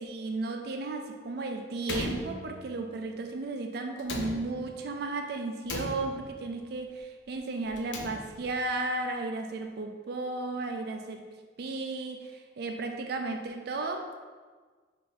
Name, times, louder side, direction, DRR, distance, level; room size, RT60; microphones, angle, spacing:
voice 1, 0.0-11.2 11.6-14.2, right 3 dB, 60° right, 5 dB, 0.4 m, -34 dB
Slam, 1.8-3.0 4.0-4.9 5.7-6.6 7.7-8.6, left 2 dB, 80° left, 0.5 m, -38 dB
3.2 x 2.8 x 3.9 m, 1.5 s
head